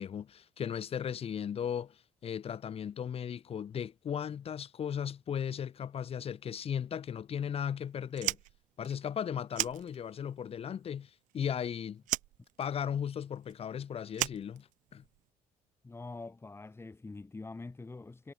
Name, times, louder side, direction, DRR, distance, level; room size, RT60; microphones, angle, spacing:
voice 1, 0.0-8.4 8.8-12.0 12.6-15.0, left 8 dB, 50° left, 4.0 m, -36 dB
Fire, 8.1-10.4 10.7-11.7 12.0-15.2, right 18 dB, 85° right, 1.5 m, -37 dB
voice 2, 15.8-18.3, left 3 dB, 20° left, 4.0 m, -45 dB
cardioid pair, 95°, 13 cm